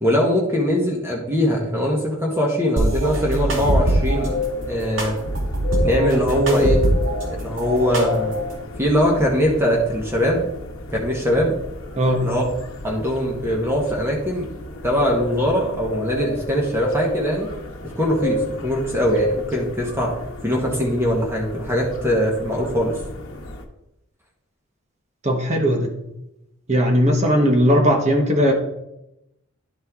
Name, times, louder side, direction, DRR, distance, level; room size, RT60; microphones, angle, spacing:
voice 1, 0.0-4.4 4.7-5.2 5.8-6.9 7.3-8.4 8.8-10.5 10.9-11.6 12.2-12.4 12.8-14.5 14.8-17.5 17.8-20.1 20.4-23.0, equal, 10° right, -2 dB, 1.2 m, -21 dB
sound 1, 2.8-4.3 5.0-7.3 7.6-8.5, right 1 dB, 65° right, 2.2 m, -22 dB
sound 2, 3.8-23.7, left 1 dB, 80° left, 0.9 m, -32 dB
voice 2, 25.2-25.9 26.7-28.5, equal, 30° right, 2 dB, 1.0 m, -18 dB
11.0 x 4.2 x 3.6 m, 0.87 s
head